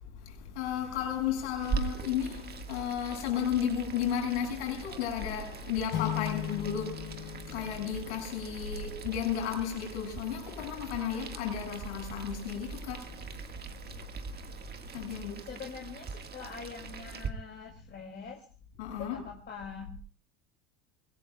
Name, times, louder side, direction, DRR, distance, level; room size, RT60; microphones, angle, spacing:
voice 1, 0.6-13.1 14.9-15.3 18.8-19.2, left 8 dB, 85° left, 7.2 m, -33 dB
Boiling, 1.6-17.3, right 6 dB, 30° right, 1.8 m, -42 dB
sound 1, 5.9-8.7, left 11 dB, 65° left, 4.6 m, -37 dB
voice 2, 15.1-18.4 18.9-20.0, left 6 dB, 30° left, 2.7 m, -44 dB
24.0 x 20.0 x 2.4 m
supercardioid pair, 120°, 33 cm